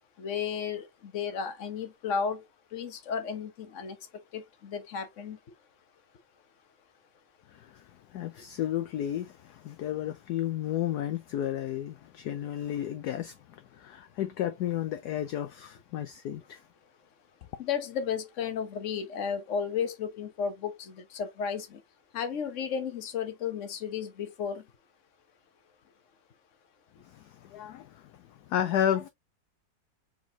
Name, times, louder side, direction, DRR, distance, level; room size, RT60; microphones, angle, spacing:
voice 1, 0.2-0.9 1.1-2.4 2.7-4.0 4.3-5.4 17.6-20.7 21.1-21.7 22.1-24.6, left 7 dB, 50° left, 1.2 m, -33 dB
voice 2, 7.5-7.8 8.1-16.6 27.1-28.1 28.5-29.1, left 11 dB, 70° left, 1.1 m, -32 dB
4.8 x 4.0 x 2.7 m
omnidirectional pair, 2.0 m